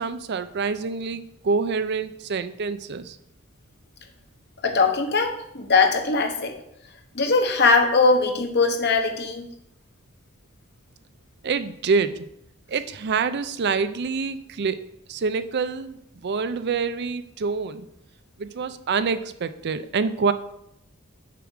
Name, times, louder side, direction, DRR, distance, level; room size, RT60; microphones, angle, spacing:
voice 1, 0.0-3.2 11.4-12.3 12.7-16.0 16.2-17.9 18.4-20.3, right 5 dB, 55° right, 12 dB, 0.5 m, -26 dB
voice 2, 4.6-6.6 7.1-9.5, left 4 dB, 55° left, 5 dB, 1.1 m, -20 dB
6.8 x 4.9 x 6.3 m, 0.78 s
head